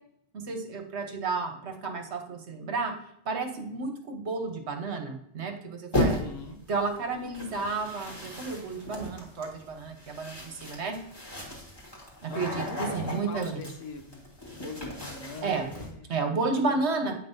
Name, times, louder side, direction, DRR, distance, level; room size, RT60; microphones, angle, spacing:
voice 1, 0.5-2.9 3.2-6.3 6.7-11.0 12.2-13.6 15.4-15.7 16.1-17.2, right 4 dB, 65° right, 5 dB, 1.2 m, -31 dB
sound 1, 5.9-6.5 7.3-15.9, left 1 dB, 20° left, 1.8 m, -35 dB
voice 2, 6.0-6.6 12.3-16.1, left 3 dB, 80° left, 5 dB, 1.3 m, -42 dB
8.4 x 5.3 x 2.7 m, 0.74 s
omnidirectional pair, 1.2 m